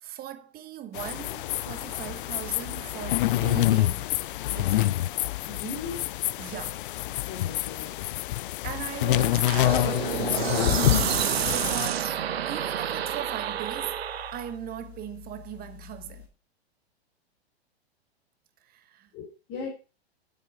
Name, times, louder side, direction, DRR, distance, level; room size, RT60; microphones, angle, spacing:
voice 1, 0.0-4.2 4.5-5.0 6.4-6.8 8.6-10.3 11.2-12.2 12.5-14.0 14.3-16.3 18.6-19.1, right 11 dB, 30° right, 1.3 m, -39 dB
sound 1, 0.9-11.9, left 16 dB, 55° left, 0.4 m, -27 dB
voice 2, 5.5-6.0 7.3-7.9 19.1-19.7, left 4 dB, 40° left, 3.4 m, -37 dB
sound 2, 9.4-14.5, right 10 dB, 70° right, 1.0 m, -29 dB
sound 3, 9.8-16.3, left 12 dB, 75° left, 3.0 m, -48 dB
10.5 x 7.7 x 4.8 m
hypercardioid pair, 110°, 32 cm